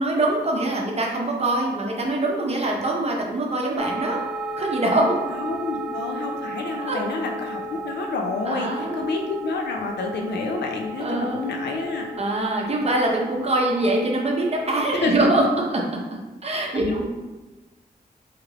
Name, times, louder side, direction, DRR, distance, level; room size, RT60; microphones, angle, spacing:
voice 1, 0.0-4.2 4.6-5.1 6.9-7.0 8.5-9.1 11.0-11.4 12.2-16.0 16.4-17.1, right 2 dB, 35° right, -1 dB, 0.7 m, -23 dB
sound 1, 3.8-14.8, right 2 dB, 5° right, 0.3 m, -35 dB
voice 2, 5.3-12.1 15.0-15.1 16.7-17.1, left 3 dB, 75° left, 2 dB, 0.5 m, -29 dB
2.9 x 2.5 x 3.0 m, 1.2 s
cardioid pair, 55°, 18 cm